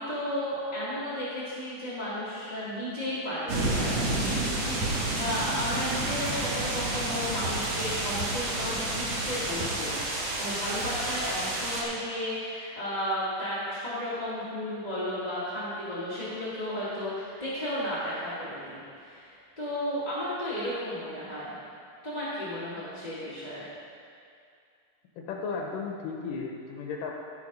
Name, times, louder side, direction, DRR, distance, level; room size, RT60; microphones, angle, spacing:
voice 1, 0.0-4.0 4.3-4.9 5.1-21.5 22.0-23.6, left 1 dB, 20° left, -11 dB, 1.3 m, -34 dB
sound 1, 3.5-11.8, right 2 dB, 55° right, 2.3 m, -30 dB
voice 2, 25.2-27.1, left 5 dB, 70° left, 0 dB, 2.4 m, -35 dB
15.0 x 5.9 x 5.4 m, 2.4 s
omnidirectional pair, 4.2 m